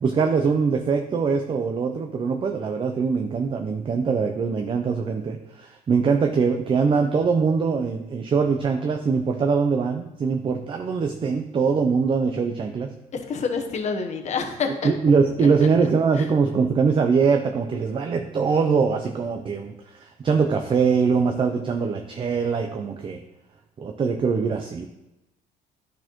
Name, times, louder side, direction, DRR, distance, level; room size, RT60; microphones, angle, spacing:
voice 1, 0.0-12.9 14.8-23.2 23.8-24.9, right 5 dB, 30° right, 4 dB, 0.5 m, -22 dB
voice 2, 13.1-14.9 16.2-16.3, left 5 dB, 40° left, 5 dB, 1.0 m, -27 dB
10.5 x 4.2 x 3.0 m, 0.94 s
cardioid pair, 110°, 17 cm